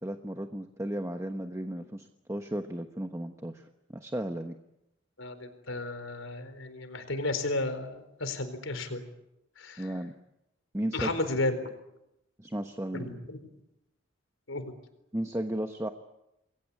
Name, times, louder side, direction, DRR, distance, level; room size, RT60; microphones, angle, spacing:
voice 1, 0.0-4.6 9.8-10.1 10.7-11.1 12.4-13.1 15.1-15.9, right 1 dB, 15° right, 6 dB, 1.1 m, -34 dB
voice 2, 5.2-9.0 9.6-9.9 10.9-11.7 12.9-13.4 14.5-14.7, left 2 dB, 80° left, 9 dB, 4.2 m, -33 dB
29.0 x 22.0 x 8.5 m, 0.88 s
head